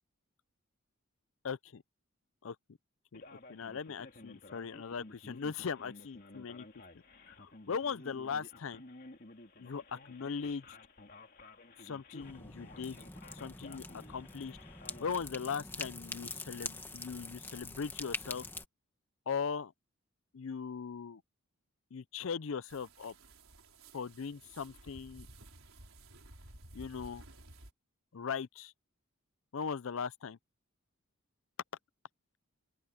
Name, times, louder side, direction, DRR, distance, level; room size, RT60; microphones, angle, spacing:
voice 1, 1.4-1.8 2.4-2.6 3.1-3.2 3.5-6.7 7.3-8.8 9.6-10.6 11.8-13.0 13.3-14.6 15.0-18.4 19.3-19.7 20.3-21.2 21.9-23.1 23.9-25.3 26.7-27.2 28.1-28.7 29.5-30.4, left 6 dB, 70° left, 0.5 m, -39 dB
Male speech man speaking, 3.1-15.1, left 2 dB, 45° left, 2.7 m, -54 dB
sound 1, 12.2-18.6, left 3 dB, 10° left, 1.7 m, -44 dB
sound 2, 22.7-27.7, right 2 dB, 70° right, 4.9 m, -54 dB
open air
head